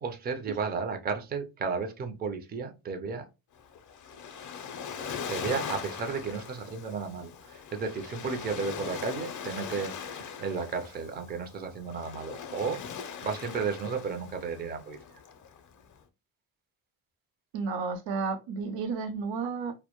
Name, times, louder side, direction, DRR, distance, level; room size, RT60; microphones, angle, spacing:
voice 1, 0.0-3.3 5.3-12.8 13.2-15.0, right 5 dB, 25° right, 0.4 m, -33 dB
Waves surf, 3.6-16.0, left 7 dB, 45° left, 0.4 m, -41 dB
voice 2, 17.5-19.7, right 5 dB, 80° right, 0.6 m, -32 dB
2.1 x 2.1 x 2.9 m
cardioid pair, 100°, 44 cm